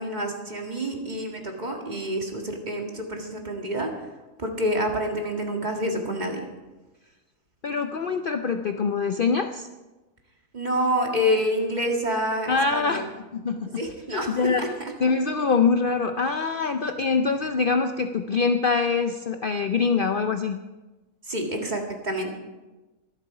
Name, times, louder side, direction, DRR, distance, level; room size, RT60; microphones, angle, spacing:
voice 1, 0.0-3.9 4.4-6.4 10.5-13.1 13.7-14.7 21.3-22.3, equal, 30° right, 1 dB, 1.9 m, -27 dB
voice 2, 7.6-9.7 12.5-13.8 14.1-14.6 15.0-20.6, left 5 dB, 70° left, 7 dB, 0.5 m, -24 dB
24.0 x 8.0 x 4.8 m, 1.1 s
omnidirectional pair, 1.7 m